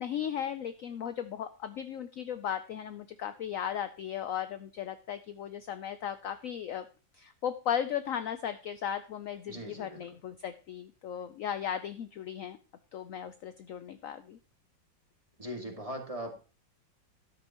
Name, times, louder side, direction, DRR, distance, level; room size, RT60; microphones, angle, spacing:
voice 1, 0.0-6.9 7.1-12.6 12.9-14.4, left 9 dB, 75° left, 11 dB, 0.7 m, -36 dB
voice 2, 9.5-10.0 15.4-16.3, equal, 20° right, 2 dB, 2.1 m, -39 dB
13.0 x 10.0 x 3.0 m, 0.34 s
omnidirectional pair, 2.1 m